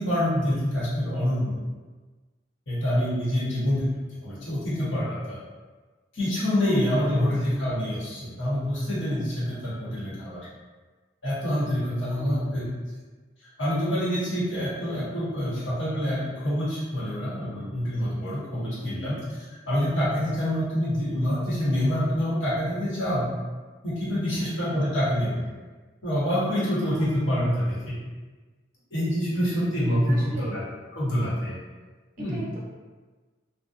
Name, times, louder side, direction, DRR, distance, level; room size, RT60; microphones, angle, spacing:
voice 1, 0.0-1.6 2.7-3.8 4.1-5.4 6.1-10.5 11.2-12.6 13.6-19.2 19.7-23.3 23.8-25.4 26.0-28.0 28.9-30.6 30.9-31.6 32.2-32.4, equal, 80° left, -9 dB, 1.0 m, -26 dB
voice 2, 3.3-3.7 7.2-7.4 12.1-12.7 14.9-15.1 18.8-19.2 24.3-24.8 27.0-27.1 27.3-27.5 29.3-29.4 30.1-30.6 32.3-32.6, right 1 dB, 45° right, -6 dB, 0.7 m, -41 dB
2.6 x 2.1 x 2.4 m, 1.3 s
head